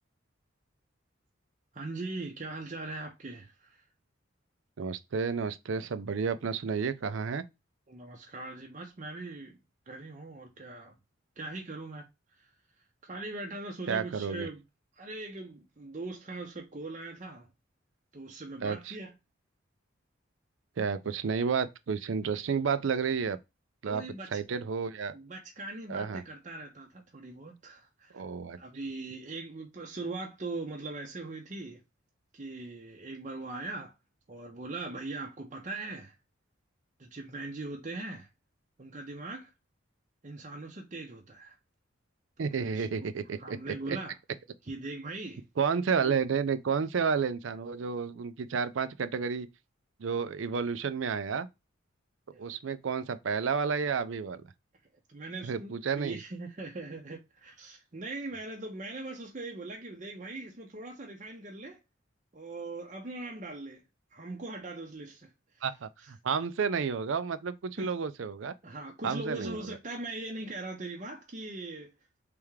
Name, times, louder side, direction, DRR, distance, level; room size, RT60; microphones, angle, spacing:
voice 1, 1.7-3.8 7.9-9.6 9.9-10.9 11.4-12.0 12.4-12.5 13.0-14.6 15.0-17.5 18.1-19.1 23.8-24.3 25.1-28.2 28.6-31.8 32.3-33.9 34.3-36.1 37.0-38.3 38.8-39.5 40.2-41.6 42.7-43.1 43.4-44.2 44.7-45.4 46.0-46.1 52.3-52.5 55.1-61.8 62.3-63.8 64.1-65.3 65.5-65.6 67.8-67.9 68.6-71.9, right 2 dB, 35° right, 0.7 m, -40 dB
voice 2, 4.8-7.4 13.9-14.5 18.6-19.0 20.8-23.4 23.8-25.1 25.9-26.2 28.1-28.6 42.4-44.0 45.6-49.5 50.0-51.5 52.4-54.4 55.4-56.2 65.6-68.5 69.0-69.8, right 6 dB, 75° right, 0.4 m, -31 dB
3.5 x 3.4 x 3.1 m
head